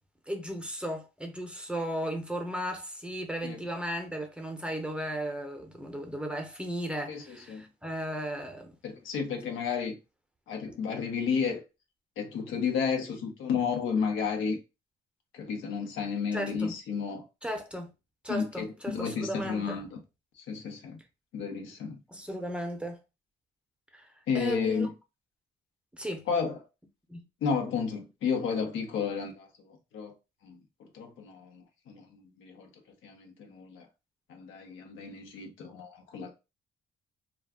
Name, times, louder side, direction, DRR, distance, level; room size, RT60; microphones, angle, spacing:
voice 1, 0.3-8.8 16.3-16.7 17.4-17.9 18.2-19.8 22.1-23.0 23.9-24.9 25.9-26.2 27.1-27.2, equal, 5° right, 0.7 m, -35 dB
voice 2, 7.1-7.6 8.8-10.0 10.5-11.6 12.2-14.6 15.3-17.2 18.3-19.9 20.4-21.0 21.3-22.0 24.3-24.9 26.3-26.6 27.4-30.1 30.4-30.6 30.9-32.7 33.0-33.9 34.3-36.3, left 6 dB, 80° left, 0.8 m, -32 dB
2.3 x 2.3 x 3.5 m
cardioid pair, 90°, 20 cm